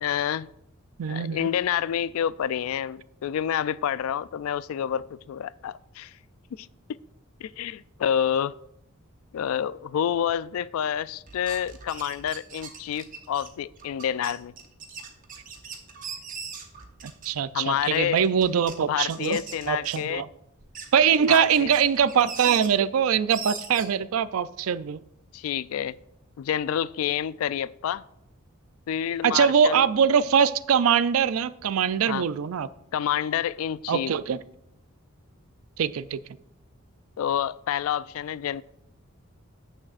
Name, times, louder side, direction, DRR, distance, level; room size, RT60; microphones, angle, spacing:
voice 1, 0.0-0.5 1.1-6.1 6.6-6.7 7.4-8.5 9.3-14.5 17.5-18.2 18.9-20.2 21.3-21.7 25.3-26.0 26.4-28.0 28.9-29.8 32.1-32.3 32.9-34.2 37.2-38.6, left 9 dB, 80° left, 0.3 m, -28 dB
voice 2, 1.0-1.5 17.0-19.4 19.7-20.3 20.9-25.0 29.2-32.7 33.9-34.4 35.8-36.2, right 7 dB, 80° right, 0.4 m, -22 dB
sound 1, 11.3-17.4 17.8-18.7 19.1-20.2 20.6-22.7 23.3-23.8, right 6 dB, 40° right, 1.0 m, -40 dB
14.5 x 6.4 x 2.5 m
head